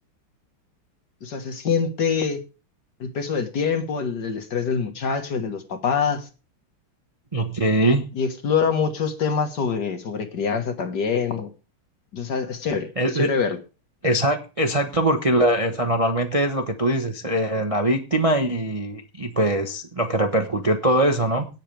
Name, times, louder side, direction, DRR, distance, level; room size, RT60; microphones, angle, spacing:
voice 1, 1.2-2.4 3.0-6.3 8.1-11.5 12.1-13.6, left 6 dB, 55° left, 6 dB, 2.0 m, -25 dB
voice 2, 7.3-8.0 13.0-13.3 14.0-21.5, right 1 dB, 25° right, 4 dB, 0.8 m, -22 dB
18.0 x 7.6 x 3.4 m, 0.32 s
omnidirectional pair, 2.3 m